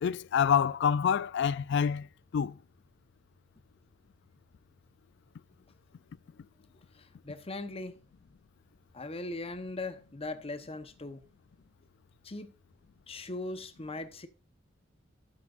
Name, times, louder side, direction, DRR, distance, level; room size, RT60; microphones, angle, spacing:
voice 1, 0.0-2.1 2.3-2.5, left 7 dB, 60° left, 0.4 m, -27 dB
voice 2, 6.9-8.0 8.9-11.2 12.2-12.5 13.1-14.3, left 2 dB, 30° left, 0.9 m, -39 dB
12.0 x 8.4 x 2.5 m
head